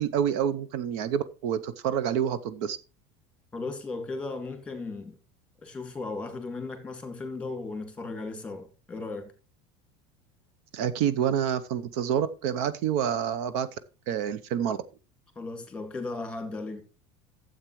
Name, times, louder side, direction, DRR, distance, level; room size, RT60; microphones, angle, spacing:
voice 1, 0.0-2.8 10.7-13.7 14.1-14.8, right 9 dB, 65° right, 0.8 m, -28 dB
voice 2, 3.5-5.2 5.6-9.3 15.4-16.8, left 3 dB, 10° left, 2.0 m, -36 dB
12.5 x 8.0 x 3.1 m
cardioid pair, 165°, 15 cm